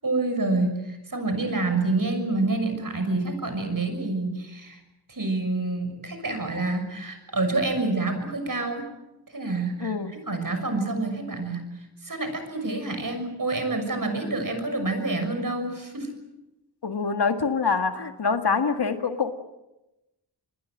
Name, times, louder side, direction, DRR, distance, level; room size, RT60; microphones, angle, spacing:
voice 1, 0.0-4.8 5.1-8.9 9.3-11.6 12.0-16.1, right 2 dB, 50° right, 7 dB, 6.4 m, -27 dB
voice 2, 9.8-10.1 16.8-19.3, left 5 dB, 65° left, 7 dB, 2.0 m, -25 dB
27.0 x 21.5 x 7.7 m, 0.95 s
wide cardioid pair, 65°, 42 cm